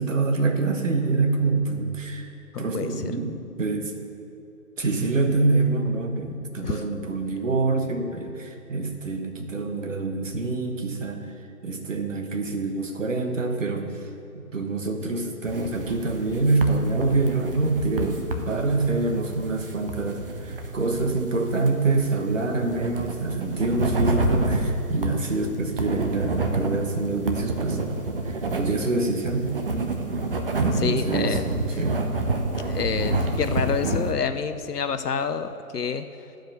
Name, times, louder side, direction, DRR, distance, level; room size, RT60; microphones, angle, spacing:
voice 1, 0.0-2.3 2.6-3.9 4.8-11.2 11.6-14.1 14.3-27.8 28.2-29.5 30.6-31.4 31.8-32.0, right 3 dB, 55° right, 3 dB, 1.3 m, -26 dB
voice 2, 2.5-3.1 6.6-6.8 30.7-31.8 32.6-36.0, left 6 dB, 90° left, 10 dB, 0.6 m, -28 dB
sound 1, 15.5-34.1, right 2 dB, 35° right, 0.8 m, -29 dB
11.5 x 5.1 x 6.5 m, 2.8 s
figure-of-eight pair, 150°, 45 cm